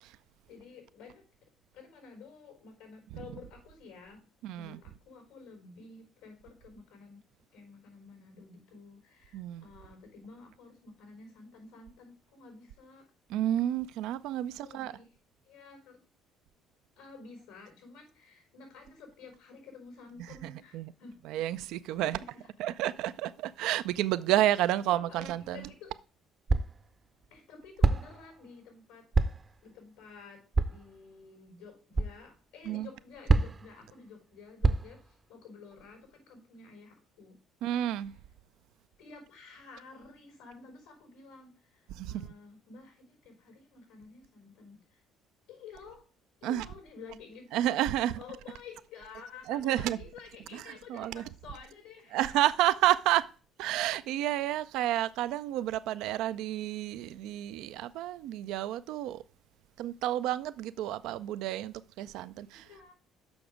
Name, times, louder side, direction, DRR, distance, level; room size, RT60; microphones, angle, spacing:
voice 1, 0.5-1.5 1.7-4.3 4.5-7.2 7.5-13.1 14.6-15.1 15.4-16.0 17.0-21.2 21.9-22.5 24.8-25.9 27.3-29.1 29.6-37.4 39.0-45.0 45.5-46.1 46.4-47.7 48.2-52.4 62.4-62.9, left 5 dB, 90° left, 4.6 m, -51 dB
voice 2, 4.4-4.8 9.3-9.7 13.3-14.9 20.4-20.9 21.3-22.2 22.6-25.7 32.7-32.9 37.6-38.1 41.9-42.3 46.4-46.7 47.5-48.2 49.5-50.0 50.5-51.2 52.1-53.3 53.6-59.2 59.8-62.7, right 13 dB, 75° right, 0.4 m, -30 dB
sound 1, 25.4-25.5 26.5-26.9 27.8-28.2 29.1-29.5 30.5-30.9 31.9-32.2 33.3-33.7 34.6-35.1, right 3 dB, 30° right, 0.6 m, -26 dB
7.0 x 6.0 x 5.0 m
hypercardioid pair, 65°, 0 cm